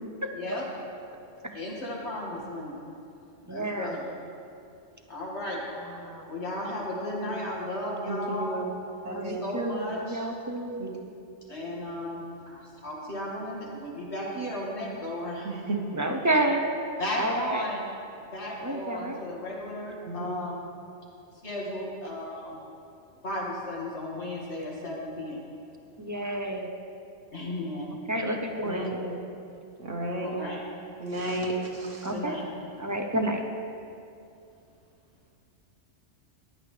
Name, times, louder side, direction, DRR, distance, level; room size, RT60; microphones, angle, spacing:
voice 1, 0.3-0.7 1.5-2.8 3.5-4.0 5.1-5.6 6.3-8.6 9.3-10.3 11.5-15.5 17.0-17.8 18.3-20.6 21.4-22.5 23.2-25.4 27.3-27.9 30.2-30.6 32.1-32.4, left 1 dB, 65° left, -4 dB, 2.4 m, -35 dB
voice 2, 3.5-4.0 5.8-6.3 9.1-10.8 15.9-16.7 17.1-17.7 18.6-19.2 26.0-26.7 28.1-29.2 32.0-32.4 32.8-33.4, right 1 dB, 20° right, 3 dB, 0.6 m, -30 dB
voice 3, 8.0-8.6 9.0-9.4 10.8-10.9 15.4-15.8 20.0-20.3 28.6-29.1 29.8-30.4 31.0-32.1, right 2 dB, 90° right, -1 dB, 1.8 m, -32 dB
15.0 x 10.5 x 3.3 m, 2.6 s
omnidirectional pair, 1.2 m